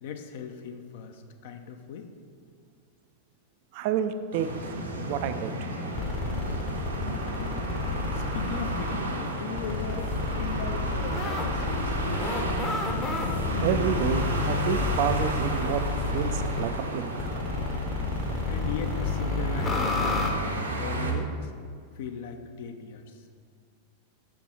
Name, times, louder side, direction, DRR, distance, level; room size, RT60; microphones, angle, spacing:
voice 1, 0.0-2.1 8.1-12.4 18.5-21.5 22.0-23.2, left 6 dB, 55° left, 6 dB, 0.6 m, -38 dB
voice 2, 3.7-4.7 5.1-5.5 13.6-15.8 16.1-17.4, right 8 dB, 45° right, 10 dB, 0.4 m, -29 dB
sound 1, 4.3-21.1, right 1 dB, 75° right, 0.9 m, -33 dB
sound 2, 5.9-9.0 9.6-16.7 17.2-20.3, left 3 dB, 20° left, 0.8 m, -30 dB
6.0 x 5.7 x 4.3 m, 2.1 s
figure-of-eight pair, 90°, 0 cm